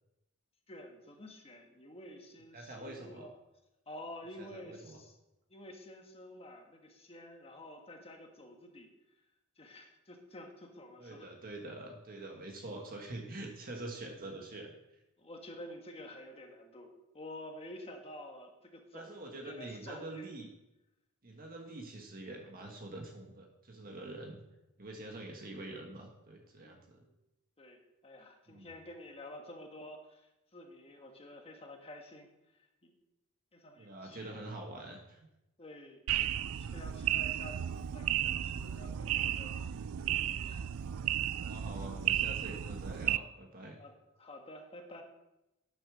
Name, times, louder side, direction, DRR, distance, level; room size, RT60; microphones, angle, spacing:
voice 1, 0.7-3.4 3.9-5.1 5.5-8.9 9.6-11.3 15.2-20.3 26.6-27.1 27.6-32.3 32.8-32.9 33.5-34.4 35.6-36.0 36.6-40.7 43.8-45.0, left 1 dB, 30° left, 3 dB, 1.6 m, -50 dB
voice 2, 2.5-3.3 4.4-5.0 11.0-14.8 18.9-20.5 21.2-24.4 24.8-27.0 28.5-28.7 33.8-35.2 41.4-43.8, right 2 dB, 45° right, 2 dB, 1.4 m, -45 dB
sound 1, 36.1-43.2, right 11 dB, 70° right, 0.4 m, -34 dB
10.0 x 7.1 x 6.2 m, 0.93 s
head